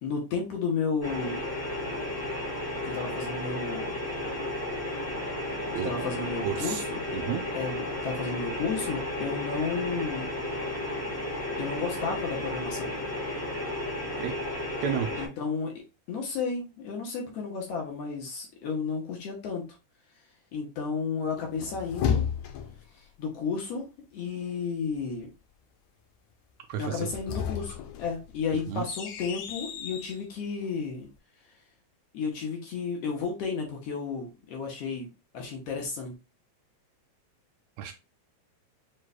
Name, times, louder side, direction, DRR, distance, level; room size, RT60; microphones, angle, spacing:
voice 1, 0.0-1.4 2.8-3.9 5.8-7.1 7.5-10.3 11.6-12.9 15.2-15.8 16.1-19.7 20.5-22.3 22.9-23.8 24.1-25.3 26.8-31.1 32.1-35.1 35.3-36.1, left 5 dB, 65° left, 0 dB, 1.8 m, -32 dB
sound 1, 1.0-15.3, left 1 dB, 20° left, 0.5 m, -33 dB
voice 2, 5.7-6.1 6.4-6.8 7.1-7.5 14.2-14.3 14.8-15.1 26.7-27.1 28.7-28.9 37.8-37.9, right 9 dB, 80° right, 5 dB, 1.7 m, -31 dB
sound 2, 21.4-22.9 26.9-30.2, left 8 dB, 85° left, 2.2 m, -33 dB
6.6 x 3.0 x 2.2 m, 0.29 s
omnidirectional pair, 3.4 m